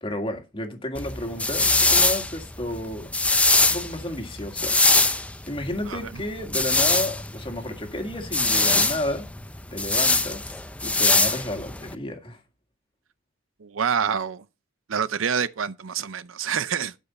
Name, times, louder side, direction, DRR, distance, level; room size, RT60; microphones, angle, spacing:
voice 1, 0.0-4.8 5.5-9.3 9.7-10.4 10.8-12.4, left 1 dB, 25° left, 1.8 m, -32 dB
sound 1, 0.9-11.9, left 2 dB, 5° left, 0.5 m, -23 dB
voice 2, 5.8-6.2 13.6-14.5 14.9-16.9, right 7 dB, 80° right, 0.6 m, -27 dB
12.0 x 5.5 x 4.2 m
head